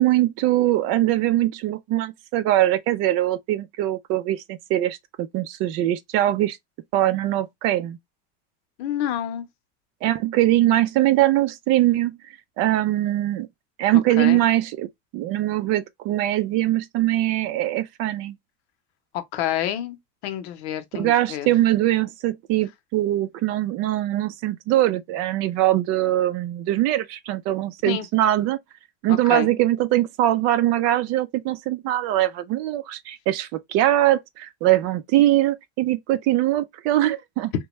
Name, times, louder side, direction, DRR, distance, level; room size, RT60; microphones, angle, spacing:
voice 1, 0.0-6.6 6.9-8.0 10.0-12.2 12.6-13.5 13.8-18.4 20.9-28.6 29.0-37.5, right 14 dB, 50° right, 0.5 m, -22 dB
voice 2, 8.8-9.5 14.2-14.4 19.3-20.0 20.2-21.5 27.9-28.1 29.3-29.5, left 11 dB, 80° left, 0.8 m, -28 dB
3.3 x 2.2 x 3.0 m
cardioid pair, 155°, 31 cm